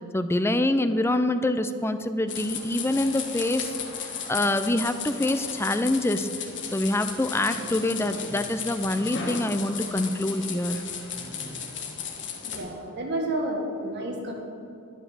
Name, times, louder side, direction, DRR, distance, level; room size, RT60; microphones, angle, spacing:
voice 1, 0.1-3.8 4.3-6.3 6.7-10.8, left 1 dB, 10° left, 9 dB, 0.5 m, -25 dB
sound 1, 2.3-12.6, left 6 dB, 60° left, 1.6 m, -35 dB
voice 2, 12.5-14.3, right 1 dB, 55° right, 1 dB, 1.7 m, -30 dB
11.0 x 11.0 x 6.4 m, 2.7 s
head